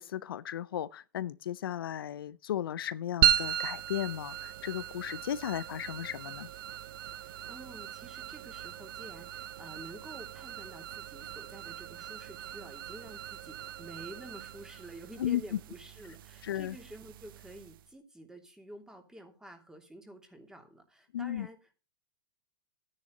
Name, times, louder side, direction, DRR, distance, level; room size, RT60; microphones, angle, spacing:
voice 1, 0.0-6.5 15.2-15.4 16.4-16.8 21.1-21.5, left 11 dB, 80° left, 0.7 m, -35 dB
sound 1, 3.2-17.9, right 10 dB, 70° right, 0.8 m, -36 dB
voice 2, 7.2-21.7, right 1 dB, 5° right, 3.0 m, -50 dB
12.0 x 9.8 x 4.0 m
hypercardioid pair, 130°, 12 cm